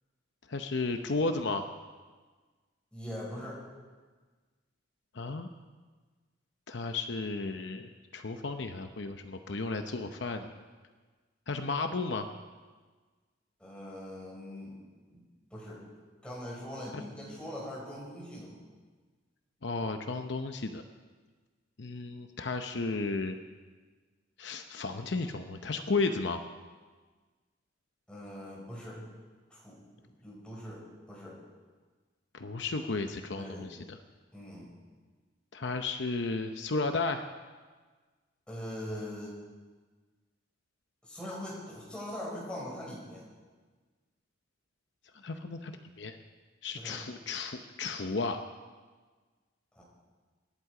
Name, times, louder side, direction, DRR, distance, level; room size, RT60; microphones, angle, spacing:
voice 1, 0.5-1.6 5.1-5.5 6.7-10.5 11.5-12.3 16.9-17.0 19.6-20.8 21.8-23.4 24.4-26.4 32.3-34.0 35.5-37.2 45.2-45.7 46.0-46.2 46.6-48.4, left 3 dB, 60° left, 6 dB, 0.8 m, -33 dB
voice 2, 2.9-3.6 13.6-14.8 15.1-15.2 15.5-15.8 16.2-18.6 28.1-29.0 29.5-31.4 33.3-33.7 34.3-34.7 38.5-39.4 41.0-43.3 46.8-47.0 49.7-49.8, left 1 dB, 5° left, -5 dB, 5.6 m, -42 dB
26.0 x 11.0 x 4.9 m, 1.4 s
head